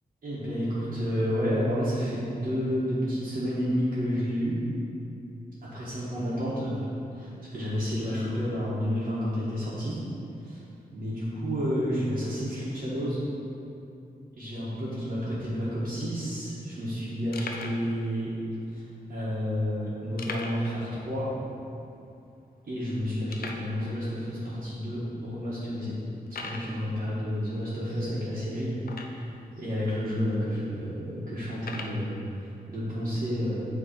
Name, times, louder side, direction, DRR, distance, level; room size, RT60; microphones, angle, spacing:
voice 1, 0.2-4.6 5.6-6.8 7.1-10.0 10.4-10.6 10.9-13.2 14.4-18.3 18.7-18.8 19.1-21.3 22.7-26.0 26.3-28.7 29.0-29.2 29.6-33.7, equal, 55° right, -10 dB, 1.5 m, -30 dB
sound 1, 16.1-16.3 16.8-16.9 17.3-17.9 18.6-18.7 20.2-20.8 21.1-21.2 21.6-21.7 22.3-22.4 23.3-23.7 24.5-24.6 25.2-25.3 26.3-26.7 28.8-29.4 30.2-30.3 31.6-32.0, left 3 dB, 70° left, 0.5 m, -39 dB
8.2 x 3.3 x 4.3 m, 2.8 s
wide cardioid pair, 120°, 16 cm